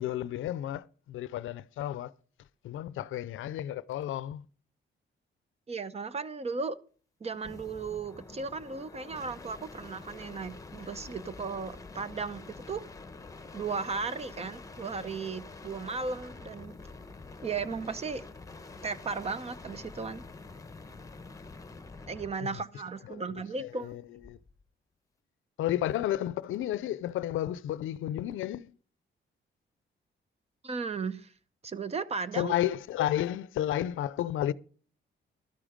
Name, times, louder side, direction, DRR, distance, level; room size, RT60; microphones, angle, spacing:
voice 1, 0.0-2.1 2.6-4.5 22.4-22.6 23.1-24.4 25.6-28.7 32.3-34.5, left 12 dB, 90° left, 0.5 m, -32 dB
voice 2, 5.7-6.8 7.2-12.8 13.5-16.8 17.4-18.2 18.8-20.2 22.1-24.0 30.6-31.3 31.6-32.5, right 4 dB, 30° right, 0.7 m, -36 dB
sound 1, 7.3-22.4 24.2-24.6, left 3 dB, 15° left, 1.0 m, -47 dB
12.5 x 8.9 x 5.1 m
cardioid pair, 120°, 20 cm